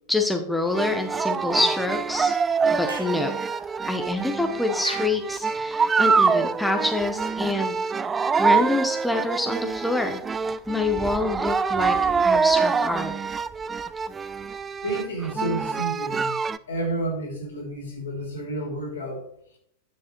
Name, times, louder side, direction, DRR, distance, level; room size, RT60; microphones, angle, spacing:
voice 1, 0.1-2.3 2.7-3.3 3.9-7.8 8.4-10.2 10.7-12.0 12.2-13.1, left 2 dB, 5° left, 4 dB, 0.8 m, -26 dB
sound 1, 0.7-16.6, right 5 dB, 15° right, 0.3 m, -25 dB
Clapping / Chirp tweet, 2.9-3.2 4.8-5.2, right 1 dB, 85° right, 1.5 m, -36 dB
voice 2, 14.8-16.3 16.7-19.3, right 1 dB, 65° left, 1 dB, 2.8 m, -30 dB
9.7 x 7.2 x 3.0 m, 0.69 s
figure-of-eight pair, 90°, 0 cm